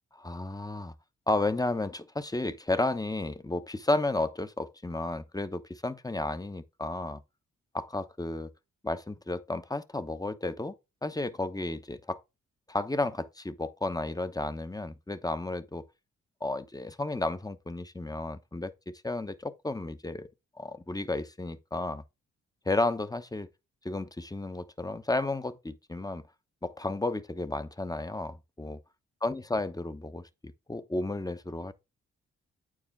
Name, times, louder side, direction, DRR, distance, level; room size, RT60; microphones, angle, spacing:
voice 1, 0.1-0.9 1.3-7.2 7.7-8.5 8.8-10.8 11.0-12.2 12.7-15.8 16.4-20.3 20.6-22.0 22.7-23.5 23.8-26.3 26.6-28.8 29.2-31.7, left 2 dB, 10° left, 0.9 m, -32 dB
8.7 x 4.8 x 3.6 m
supercardioid pair, 45°, 30 cm